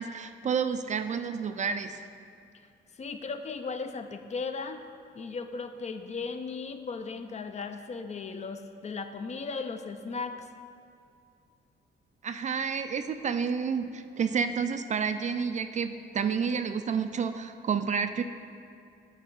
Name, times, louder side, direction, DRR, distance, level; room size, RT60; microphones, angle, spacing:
voice 1, 0.0-2.0 12.2-18.2, right 6 dB, 35° right, 9 dB, 0.4 m, -30 dB
voice 2, 2.9-4.8 5.1-10.5, left 4 dB, 35° left, 8 dB, 0.5 m, -36 dB
9.1 x 4.4 x 3.9 m, 2.5 s
cardioid pair, 90°, 20 cm